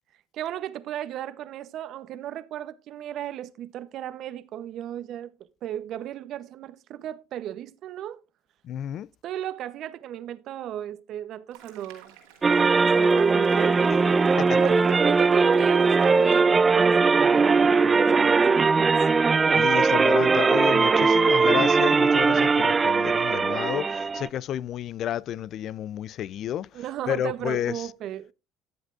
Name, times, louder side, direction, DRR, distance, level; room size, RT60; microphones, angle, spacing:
voice 1, 0.3-5.3 5.6-8.2 9.2-12.2 12.6-14.1 14.6-18.9 26.7-28.3, right 11 dB, 60° right, 0.8 m, -35 dB
voice 2, 8.6-9.1 14.4-14.6 19.5-26.7 27.1-27.9, left 11 dB, 55° left, 0.4 m, -31 dB
sound 1, 11.5-16.4, right 9 dB, 90° right, 2.9 m, -52 dB
sound 2, 12.4-24.3, right 4 dB, 25° right, 0.5 m, -20 dB
14.0 x 8.1 x 2.5 m
supercardioid pair, 85°, 0 cm